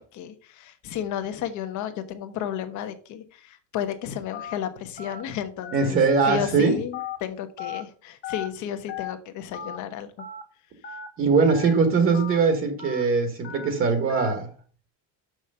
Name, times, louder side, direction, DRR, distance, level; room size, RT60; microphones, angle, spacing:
voice 1, 0.0-6.0 6.2-10.2, left 10 dB, 55° left, 1.2 m, -33 dB
Telephone, 4.3-4.6 5.0-5.2 5.6-5.9 6.3-6.5 6.9-7.2 7.6-7.8 8.2-8.5 8.9-9.1 9.5-9.8 10.2-10.4 10.8-11.1 11.5-11.7 12.1-12.4 12.8-13.0 13.4-13.7 14.1-14.3, left 7 dB, 35° left, 1.4 m, -36 dB
voice 2, 5.7-6.7 11.2-14.5, right 4 dB, 35° right, 1.5 m, -21 dB
6.4 x 6.2 x 5.6 m
cardioid pair, 165°, 36 cm